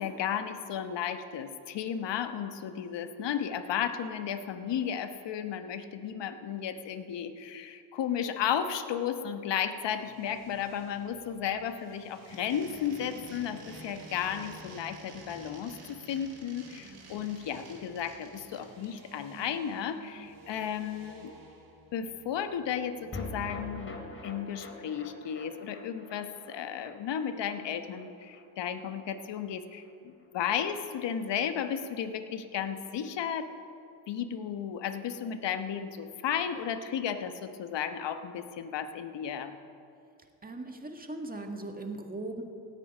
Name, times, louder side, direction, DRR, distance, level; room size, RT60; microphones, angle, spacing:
voice 1, 0.0-21.3 21.9-24.0 24.2-33.5 34.1-39.6, left 8 dB, 60° left, 9 dB, 1.2 m, -34 dB
sound 1, 9.8-23.5, right 2 dB, 45° right, 3.0 m, -54 dB
sound 2, 12.1-18.9, right 2 dB, 60° right, 4.2 m, -51 dB
voice 2, 16.8-17.3 40.4-42.4, right 2 dB, 20° right, 4 dB, 1.8 m, -39 dB
sound 3, 23.1-29.6 29.8-29.9 30.2-30.3, left 2 dB, 25° left, 2.7 m, -45 dB
17.5 x 9.1 x 5.5 m, 2.5 s
supercardioid pair, 70°, 48 cm